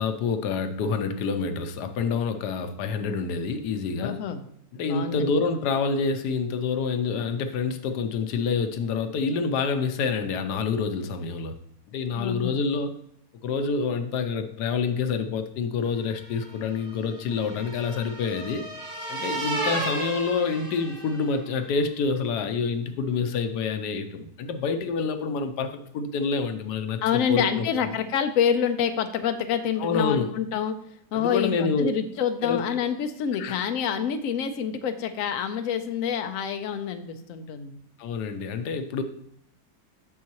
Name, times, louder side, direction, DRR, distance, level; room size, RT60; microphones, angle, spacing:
voice 1, 0.0-4.2 4.7-11.6 11.9-13.0 13.4-18.6 19.1-27.0 27.3-27.6 29.8-30.3 31.1-31.9 32.4-32.6 33.4-33.6 38.0-39.0, left 5 dB, 85° left, 8 dB, 1.3 m, -27 dB
voice 2, 4.0-4.5 4.9-5.3 12.2-12.6 27.0-30.8 31.1-37.8, left 8 dB, 65° left, 8 dB, 1.0 m, -27 dB
sound 1, 16.1-21.5, right 2 dB, 70° right, 2.4 m, -34 dB
8.4 x 6.3 x 2.9 m, 0.71 s
omnidirectional pair, 1.7 m